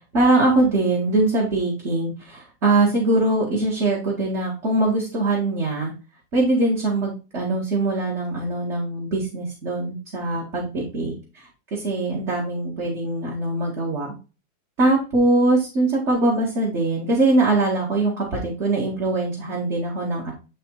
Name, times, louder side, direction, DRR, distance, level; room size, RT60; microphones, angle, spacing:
voice 1, 0.1-5.9 6.3-14.1 14.8-20.3, right 2 dB, 45° right, -3 dB, 2.2 m, -22 dB
10.0 x 3.5 x 4.0 m, 0.33 s
omnidirectional pair, 1.7 m